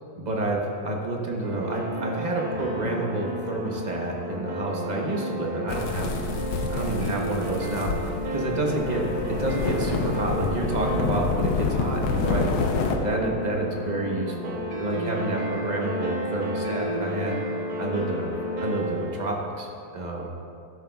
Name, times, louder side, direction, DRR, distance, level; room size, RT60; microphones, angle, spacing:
voice 1, 0.2-6.2 6.7-12.5 13.0-17.4 17.8-18.3 18.6-20.3, right 2 dB, 30° right, -1 dB, 0.9 m, -29 dB
sound 1, 1.4-19.1, equal, 70° right, 1.6 m, -32 dB
Insulation tear, 5.7-13.0, left 4 dB, 85° left, 1.4 m, -28 dB
12.0 x 10.0 x 2.3 m, 2.4 s
omnidirectional pair, 1.9 m